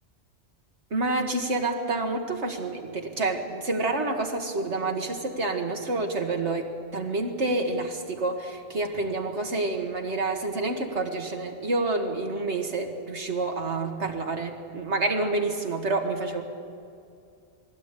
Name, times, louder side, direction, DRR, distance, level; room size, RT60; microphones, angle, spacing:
voice 1, 0.9-16.4, right 2 dB, 85° right, 3 dB, 2.1 m, -28 dB
21.0 x 16.5 x 8.4 m, 2.5 s
omnidirectional pair, 1.1 m